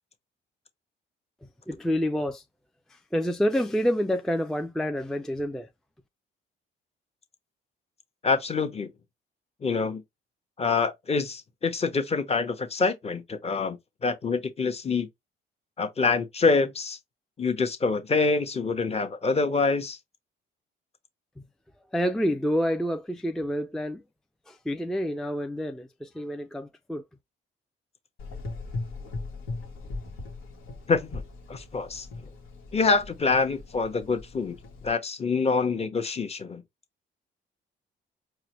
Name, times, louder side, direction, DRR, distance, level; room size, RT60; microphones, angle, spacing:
voice 1, 1.7-2.4 2.9-5.7 21.9-24.0 24.5-27.0, equal, ahead, 0.3 m, -28 dB
voice 2, 8.2-8.9 9.6-10.0 10.6-15.1 15.8-17.0 17.4-20.0 30.9-31.2 31.5-32.1 32.7-34.6 34.8-36.6, left 4 dB, 30° left, 0.8 m, -26 dB
Gurgling / Engine, 28.2-34.9, left 3 dB, 90° left, 1.1 m, -39 dB
4.7 x 2.1 x 3.0 m
cardioid pair, 90°, 20 cm